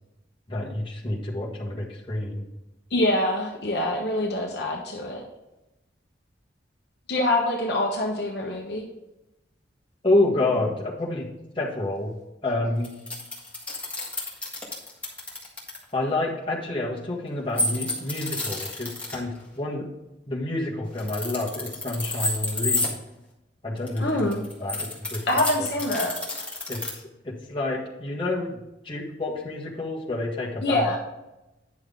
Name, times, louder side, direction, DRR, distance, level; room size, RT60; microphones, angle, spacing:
voice 1, 0.5-2.5 10.0-11.3 11.5-12.1 12.4-12.9 15.9-19.9 20.3-22.9 23.6-24.3 24.6-25.2 25.6-25.7 26.7-28.6 28.8-30.8, left 2 dB, 25° left, -4 dB, 1.7 m, -28 dB
voice 2, 2.9-5.2 7.1-8.8 24.0-24.4 25.3-26.1 30.6-31.0, left 1 dB, 55° left, 0 dB, 1.1 m, -25 dB
sound 1, 12.8-15.8 17.6-19.2 20.9-22.9 23.8-26.9, left 2 dB, 5° left, 1.7 m, -29 dB
9.7 x 6.3 x 3.8 m, 0.97 s
head